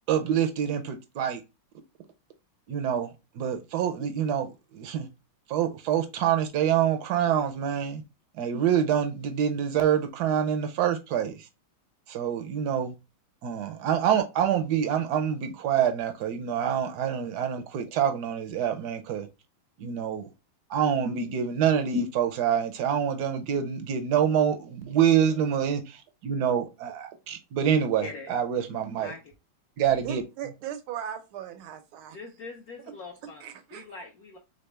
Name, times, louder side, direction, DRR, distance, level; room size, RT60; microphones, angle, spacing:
voice 1, 0.1-1.4 2.7-5.1 5.5-8.0 8.4-11.4 12.1-12.9 13.4-19.3 19.8-20.3 20.7-29.1 29.8-30.2, right 8 dB, 70° right, 0.9 m, -26 dB
voice 2, 28.0-28.3 29.0-29.3 32.1-33.4 33.7-34.4, left 4 dB, 65° left, 0.9 m, -42 dB
voice 3, 30.0-32.2 33.2-33.9, right 9 dB, 85° right, 1.6 m, -38 dB
4.0 x 3.6 x 3.3 m
omnidirectional pair, 2.2 m